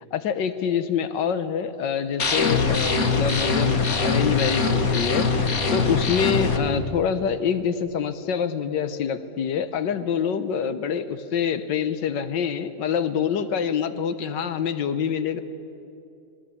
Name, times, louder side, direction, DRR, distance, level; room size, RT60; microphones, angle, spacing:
voice 1, 0.1-15.4, left 7 dB, 75° left, 11 dB, 1.7 m, -26 dB
sound 1, 2.2-6.6, left 4 dB, 50° left, 2.0 m, -22 dB
25.5 x 19.5 x 8.5 m, 2.7 s
omnidirectional pair, 2.0 m